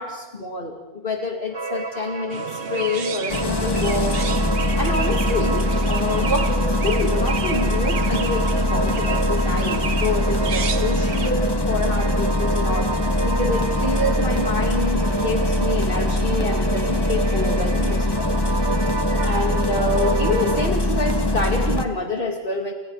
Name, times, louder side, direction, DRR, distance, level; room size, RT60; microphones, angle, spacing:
voice 1, 0.0-4.2 4.8-18.4 19.1-22.7, left 2 dB, 60° left, 2 dB, 2.7 m, -27 dB
sound 1, 1.5-20.7, right 4 dB, 25° right, 0.8 m, -30 dB
Chirp tweet, 2.3-11.3, right 6 dB, 70° right, 1.3 m, -33 dB
Engine starting, 3.3-21.8, left 1 dB, 25° left, 1.5 m, -22 dB
29.0 x 28.0 x 4.9 m, 1.1 s
omnidirectional pair, 1.0 m